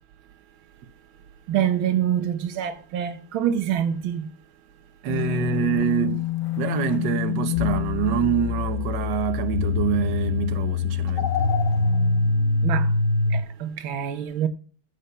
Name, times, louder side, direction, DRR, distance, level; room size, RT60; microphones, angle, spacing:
voice 1, 1.5-4.3 12.6-12.9 13.3-14.5, right 9 dB, 80° right, 1.7 m, -25 dB
voice 2, 5.0-6.3 6.6-11.3, right 10 dB, 65° right, 1.7 m, -26 dB
sound 1, 5.1-13.4, left 5 dB, 65° left, 1.6 m, -24 dB
14.5 x 5.2 x 5.5 m
omnidirectional pair, 2.2 m